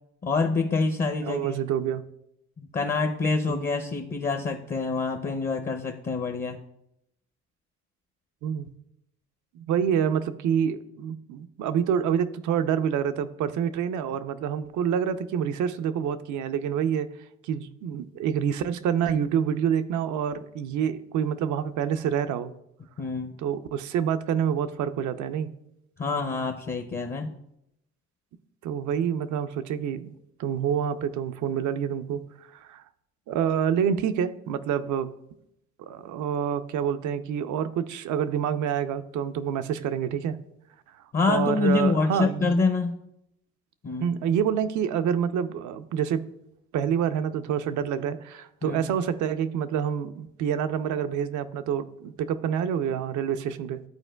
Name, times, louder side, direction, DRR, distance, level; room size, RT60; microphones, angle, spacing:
voice 1, 0.2-1.6 2.6-6.6 23.0-23.4 26.0-27.3 41.1-43.0 43.8-44.1 48.6-48.9, left 4 dB, 30° left, 5 dB, 0.5 m, -26 dB
voice 2, 1.2-2.0 3.5-3.6 8.4-8.7 9.5-17.1 17.4-22.5 23.4-25.5 28.6-30.1 30.4-32.2 32.5-32.8 33.3-35.1 35.8-40.4 41.3-42.6 44.0-46.2 46.7-53.8, right 8 dB, 75° right, 11 dB, 0.5 m, -27 dB
12.0 x 4.4 x 2.2 m, 0.80 s
cardioid pair, 90°, 30 cm